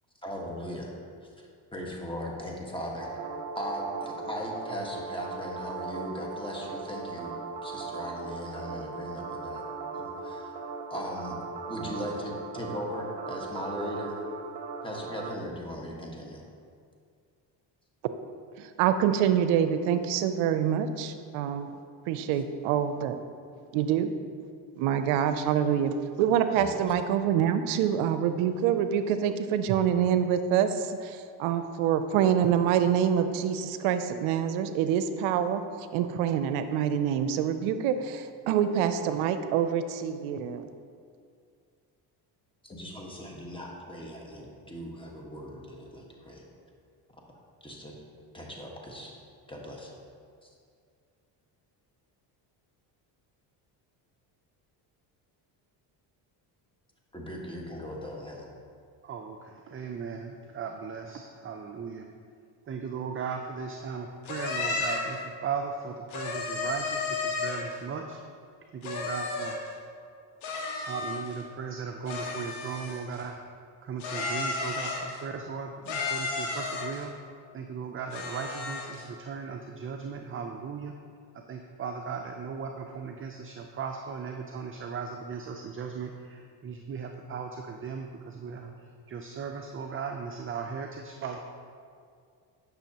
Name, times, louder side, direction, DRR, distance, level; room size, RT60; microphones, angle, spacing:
voice 1, 0.2-0.9 1.2-3.3 3.5-7.3 7.6-9.6 10.0-10.6 10.9-11.4 11.7-14.2 14.8-16.4 26.5-26.9 42.6-46.4 47.6-48.0 48.3-49.1 49.5-49.9 50.4-50.5 57.1-58.5, equal, 10° left, -1 dB, 1.5 m, -38 dB
sound 1, 3.0-15.3, right 4 dB, 55° right, 0.9 m, -38 dB
voice 2, 18.6-21.8 22.1-23.2 23.7-24.1 24.8-35.6 35.9-40.6, right 9 dB, 80° right, 10 dB, 0.6 m, -26 dB
voice 3, 59.0-62.0 62.7-68.2 68.7-69.6 70.8-73.4 73.8-77.1 77.5-80.9 81.5-88.7 89.1-91.4, right 6 dB, 25° right, 4 dB, 0.4 m, -37 dB
sound 2, 64.3-65.2 66.1-67.7 68.8-69.7 70.4-71.4 72.1-73.2 74.0-75.2 75.9-77.0 78.1-79.0, left 3 dB, 70° left, 1.7 m, -33 dB
10.5 x 6.1 x 2.9 m, 2.2 s
supercardioid pair, 80°, 49 cm